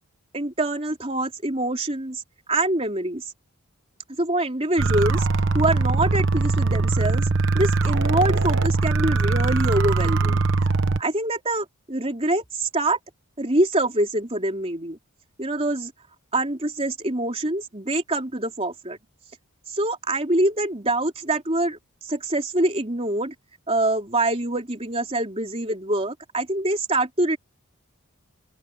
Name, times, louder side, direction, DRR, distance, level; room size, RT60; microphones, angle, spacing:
voice 1, 0.3-2.2 2.5-3.2 4.2-5.3 5.5-7.3 7.5-10.4 11.0-13.0 13.4-15.0 15.4-15.9 16.3-19.0 19.7-21.8 22.0-23.3 23.7-27.4, right 1 dB, 25° right, 3.8 m, -25 dB
sound 1, 4.8-11.0, right 3 dB, 60° right, 1.1 m, -21 dB
open air
head